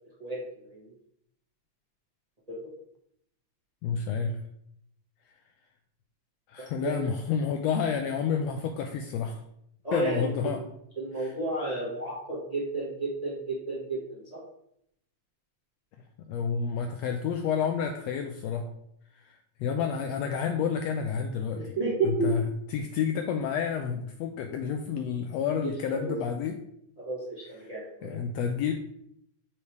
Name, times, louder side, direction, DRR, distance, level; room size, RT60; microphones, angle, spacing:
voice 1, 3.8-4.4 6.5-9.4 9.9-10.6 11.2-11.3 16.2-18.7 19.1-21.6 22.0-22.4 22.7-26.5 28.0-28.7, left 6 dB, 80° left, 5 dB, 1.6 m, -30 dB
voice 2, 6.6-7.1 9.8-10.7 11.0-14.4 21.5-22.3 25.6-26.2 27.0-28.2, right 2 dB, 30° right, -6 dB, 0.7 m, -32 dB
7.0 x 3.4 x 4.6 m, 0.74 s
omnidirectional pair, 3.3 m